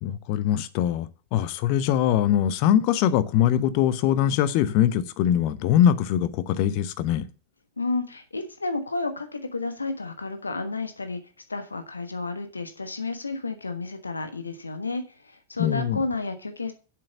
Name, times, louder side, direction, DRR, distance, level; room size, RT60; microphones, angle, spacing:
voice 1, 0.0-7.3 15.6-16.0, left 10 dB, 45° left, 0.9 m, -22 dB
voice 2, 7.8-11.2 11.5-16.7, left 3 dB, 80° left, 1.4 m, -31 dB
7.6 x 7.5 x 7.3 m
figure-of-eight pair, 90°, 0 cm